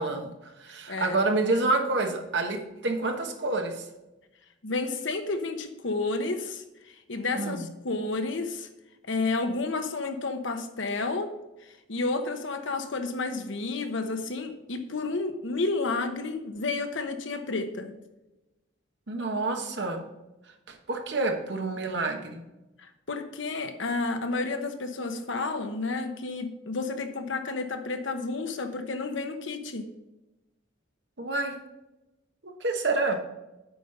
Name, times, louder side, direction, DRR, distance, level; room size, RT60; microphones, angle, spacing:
voice 1, 0.0-3.9 7.3-7.7 19.1-20.1 20.7-22.4 31.2-31.6 32.4-33.2, right 2 dB, 60° right, 4 dB, 1.3 m, -28 dB
voice 2, 0.9-1.2 4.6-8.7 9.1-11.3 11.6-18.0 22.8-29.9, left 3 dB, 70° left, 7 dB, 1.0 m, -31 dB
8.4 x 5.3 x 5.5 m, 1.0 s
head